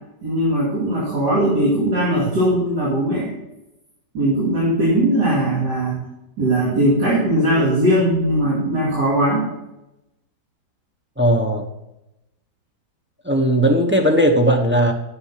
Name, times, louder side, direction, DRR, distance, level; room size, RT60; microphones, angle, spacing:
voice 1, 0.2-3.3 4.1-6.0 6.4-9.5, right 1 dB, 85° right, -8 dB, 3.0 m, -19 dB
voice 2, 11.2-11.7 13.2-14.9, right 1 dB, 10° right, 2 dB, 0.5 m, -17 dB
9.5 x 6.3 x 5.7 m, 0.91 s
omnidirectional pair, 1.8 m